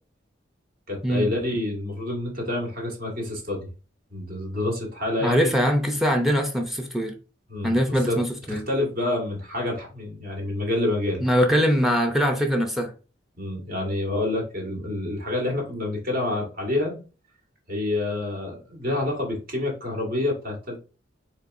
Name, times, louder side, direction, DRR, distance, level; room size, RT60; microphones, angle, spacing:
voice 1, 0.9-3.7 4.1-5.5 7.5-7.7 8.1-8.2 8.5-11.2 13.4-17.0 17.7-20.8, left 2 dB, 55° right, 1.7 m, -28 dB
voice 2, 5.2-7.1 7.6-8.6 11.2-12.9, equal, ahead, 0.6 m, -22 dB
4.3 x 3.5 x 2.6 m
head